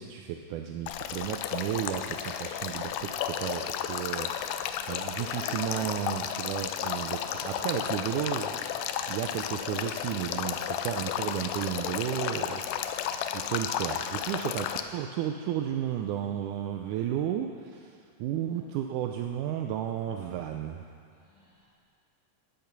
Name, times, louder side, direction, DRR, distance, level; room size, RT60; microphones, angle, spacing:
voice 1, 0.0-13.1 13.3-20.8, right 10 dB, 80° right, 4 dB, 1.9 m, -33 dB
Male speech man speaking / Stream / Trickle dribble, 0.9-14.8, left 9 dB, 90° left, 2.4 m, -33 dB
voice 2, 20.1-20.4 21.1-21.9, equal, 25° right, -9 dB, 4.1 m, -61 dB
12.5 x 8.7 x 6.0 m, 2.3 s
omnidirectional pair, 4.0 m